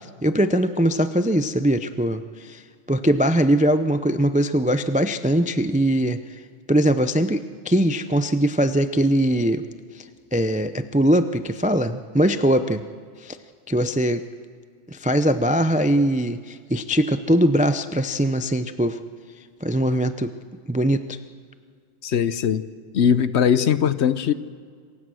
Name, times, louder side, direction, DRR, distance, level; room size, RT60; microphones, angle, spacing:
voice 1, 0.2-2.6 2.9-6.4 6.7-9.6 9.9-12.8 13.2-13.4 13.7-14.2 14.9-19.0 19.6-20.3 20.7-21.2, right 1 dB, 15° right, 11 dB, 0.3 m, -21 dB
voice 2, 22.0-22.6 22.9-24.3, left 8 dB, 65° left, 14 dB, 1.0 m, -20 dB
26.5 x 16.0 x 6.4 m, 2.1 s
omnidirectional pair, 1.3 m